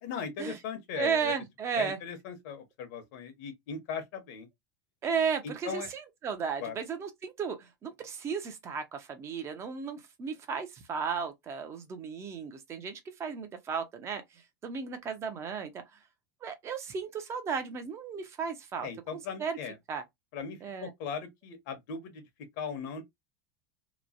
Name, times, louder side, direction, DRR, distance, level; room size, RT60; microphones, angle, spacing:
voice 1, 0.0-1.3 1.7-4.5 5.4-5.9 6.6-6.8 18.8-19.8 20.3-22.3 22.6-23.0, left 6 dB, 65° left, 1.0 m, -38 dB
voice 2, 1.0-2.0 5.0-16.0 16.4-19.6 19.9-20.0 20.6-20.9, right 6 dB, 25° right, 0.7 m, -34 dB
3.0 x 2.2 x 2.5 m
supercardioid pair, 140°, 10 cm